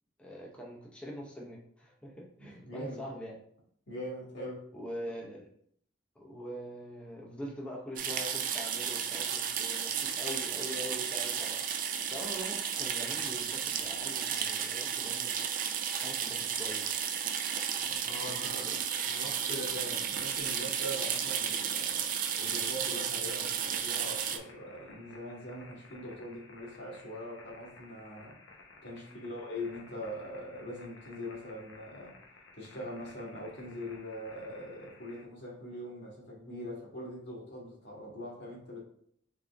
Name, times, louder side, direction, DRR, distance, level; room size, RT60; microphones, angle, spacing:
voice 1, 0.2-3.4 4.7-5.5 6.2-15.4 15.6-15.7 16.0-17.0 18.2-18.8 29.0-29.3, equal, 5° left, -3 dB, 0.6 m, -44 dB
voice 2, 2.4-3.0 3.9-4.6 17.8-18.8 19.0-22.0 22.4-28.4 28.8-32.2 32.6-38.8, equal, 65° left, -3 dB, 1.5 m, -42 dB
sound 1, 8.0-24.4, right 8 dB, 45° right, 0.4 m, -33 dB
sound 2, 21.8-35.2, left 3 dB, 85° left, 0.8 m, -55 dB
3.8 x 3.4 x 3.4 m, 0.66 s
head